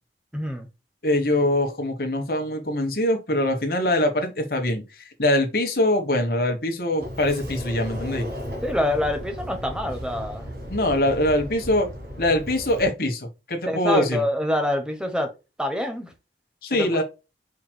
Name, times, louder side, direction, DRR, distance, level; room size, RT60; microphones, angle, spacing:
voice 1, 0.3-0.7 8.6-10.5 11.0-11.2 13.7-15.3 15.6-16.1 16.7-17.0, left 1 dB, 5° right, 0.9 m, -26 dB
voice 2, 1.0-8.3 10.7-11.9 12.2-14.2 16.6-17.0, left 1 dB, 55° left, 1.2 m, -23 dB
Sliding door, 7.0-12.9, equal, 55° right, 1.7 m, -35 dB
5.0 x 4.5 x 2.2 m
head